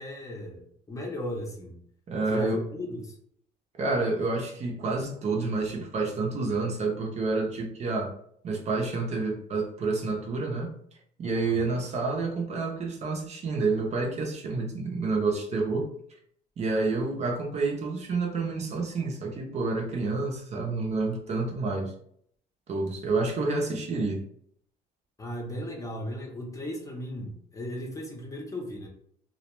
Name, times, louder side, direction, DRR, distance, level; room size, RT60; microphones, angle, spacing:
voice 1, 0.0-1.8 2.3-3.2 11.4-11.7 25.2-28.9, left 1 dB, 20° left, 0 dB, 0.6 m, -36 dB
voice 2, 2.1-2.6 3.8-8.1 8.4-10.8 11.2-15.9 16.6-21.9 22.7-24.2, right 3 dB, 40° right, 1 dB, 0.5 m, -29 dB
2.3 x 2.1 x 2.9 m, 0.65 s
cardioid pair, 110°, 17 cm